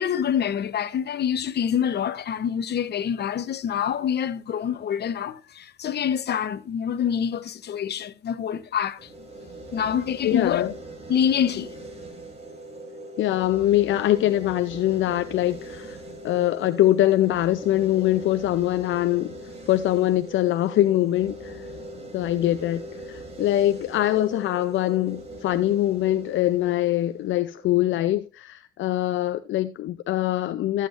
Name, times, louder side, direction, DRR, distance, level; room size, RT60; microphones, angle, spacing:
voice 1, 0.0-9.1 9.7-10.7 11.1-11.7, left 8 dB, 55° left, 1.0 m, -26 dB
sound 1, 9.0-28.0, right 1 dB, 30° right, 5.0 m, -41 dB
voice 2, 10.2-10.7 13.2-16.0 16.2-19.4 19.7-21.7 22.1-30.9, left 14 dB, 75° left, 0.6 m, -23 dB
13.5 x 8.3 x 2.6 m
cardioid pair, 90°, 20 cm